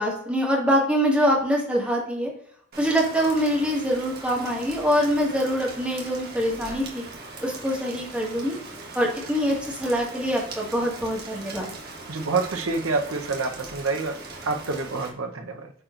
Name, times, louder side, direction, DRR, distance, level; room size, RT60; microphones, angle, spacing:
voice 1, 0.0-2.3 2.8-7.0 7.4-8.6 8.9-11.7, equal, 5° right, -3 dB, 1.9 m, -24 dB
Rain, 2.7-15.1, right 3 dB, 50° right, 1.4 m, -40 dB
voice 2, 12.1-14.2 14.4-15.7, right 3 dB, 75° right, 4 dB, 0.9 m, -27 dB
8.5 x 4.5 x 2.6 m, 0.64 s
head